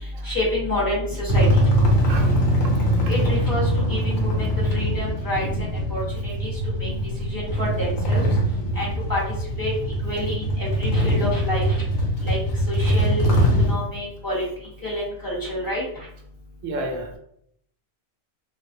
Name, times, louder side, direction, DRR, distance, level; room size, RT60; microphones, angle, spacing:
voice 1, 0.2-1.5 3.1-5.5 5.9-6.5 6.8-6.9 7.3-8.2 8.7-9.2 9.6-9.7 10.0-11.8 12.2-12.4 12.7-13.3 13.7-14.4 14.8-16.1, left 1 dB, 20° left, -7 dB, 0.9 m, -28 dB
sound 1, 1.3-13.7, equal, 90° left, 1.0 m, -22 dB
voice 2, 16.6-17.2, right 1 dB, 75° right, 2 dB, 0.9 m, -32 dB
2.5 x 2.0 x 2.5 m, 0.70 s
omnidirectional pair, 1.4 m